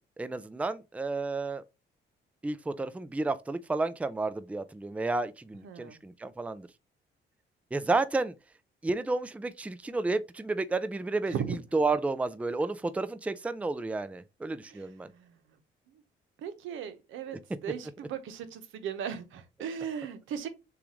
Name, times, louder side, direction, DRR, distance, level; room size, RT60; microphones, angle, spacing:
voice 1, 0.2-1.6 2.4-6.7 7.7-8.3 8.8-15.1, right 3 dB, 5° right, 0.4 m, -31 dB
voice 2, 5.6-6.0 11.3-11.6 14.7-14.9 15.1-15.4 16.4-17.4 17.6-20.5, right 8 dB, 85° right, 0.9 m, -37 dB
6.9 x 2.5 x 3.1 m
cardioid pair, 90°, 20 cm